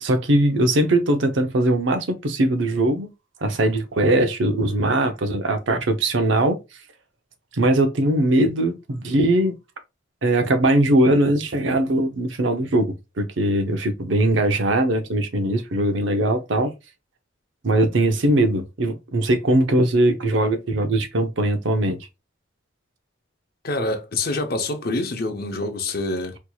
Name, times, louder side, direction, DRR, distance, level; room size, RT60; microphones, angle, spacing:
voice 1, 0.0-3.1 3.4-6.6 7.5-9.5 10.2-16.7 17.6-22.0, right 1 dB, 70° right, 0.7 m, -20 dB
voice 2, 23.6-26.4, left 2 dB, 50° left, 0.7 m, -26 dB
4.4 x 2.8 x 2.3 m
head